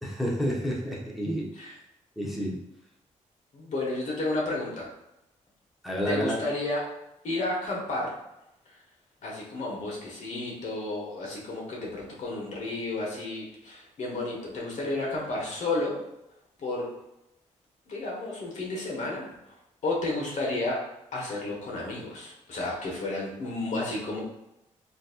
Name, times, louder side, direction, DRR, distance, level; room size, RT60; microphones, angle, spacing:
voice 1, 0.0-1.5 2.2-2.6 5.8-6.4, equal, ahead, -4 dB, 0.8 m, -29 dB
voice 2, 3.5-4.9 6.1-6.8 7.2-8.1 9.2-16.0 16.6-16.9 17.9-19.2 19.8-20.8 21.1-24.2, left 2 dB, 70° left, -3 dB, 1.1 m, -32 dB
3.9 x 2.7 x 2.4 m, 0.89 s
cardioid pair, 90°, 13 cm